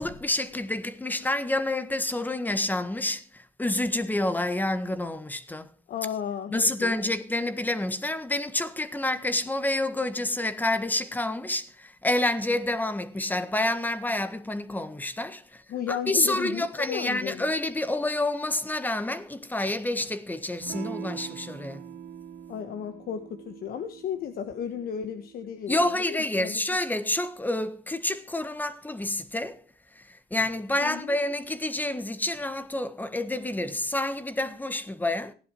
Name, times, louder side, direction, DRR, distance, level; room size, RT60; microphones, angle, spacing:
voice 1, 0.0-5.7 6.5-15.6 15.9-21.8 25.7-29.6 29.9-35.3, left 1 dB, 10° left, 1.5 m, -28 dB
voice 2, 5.9-7.1 15.7-17.5 22.5-26.6 30.8-31.1, left 8 dB, 60° left, 1.4 m, -34 dB
Electric guitar / Strum, 20.6-25.7, right 9 dB, 75° right, 2.6 m, -43 dB
16.0 x 10.5 x 4.6 m
cardioid pair, 110°, 17 cm